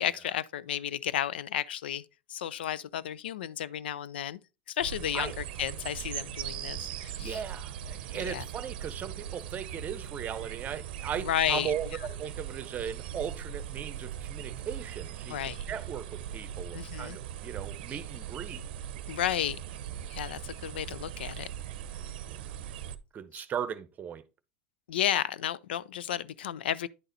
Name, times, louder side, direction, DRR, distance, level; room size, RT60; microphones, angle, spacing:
voice 1, 0.0-2.0 2.3-4.4 4.7-7.4 8.1-8.4 11.2-11.7 15.3-15.6 16.7-17.2 19.1-19.6 20.1-21.5 23.3-23.4 24.9-26.9, left 11 dB, 85° left, 0.4 m, -32 dB
sound 1, 4.8-23.0, right 9 dB, 75° right, 0.6 m, -40 dB
voice 2, 7.2-15.4 15.7-18.6 22.3-22.5 23.1-24.2, right 8 dB, 30° right, 0.8 m, -37 dB
10.0 x 4.0 x 4.0 m
hypercardioid pair, 105°, 5 cm